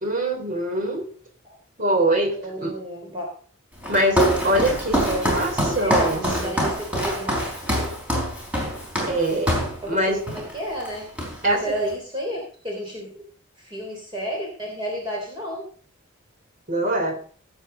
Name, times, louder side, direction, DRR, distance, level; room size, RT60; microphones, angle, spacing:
voice 1, 0.0-1.1 1.8-2.7 3.9-6.5 9.1-9.5 9.9-10.2 11.4-11.6 16.7-17.2, right 1 dB, 40° right, 1 dB, 3.7 m, -23 dB
voice 2, 2.3-3.3 4.9-5.3 5.7-7.4 7.8-8.0 9.8-11.1 11.5-13.2 13.6-15.7, right 1 dB, 20° right, -1 dB, 3.4 m, -31 dB
Walk footsteps, 3.8-9.8 10.3-10.5 10.8-11.6, equal, 5° right, 4.1 m, -25 dB
17.5 x 7.8 x 3.9 m, 0.43 s
head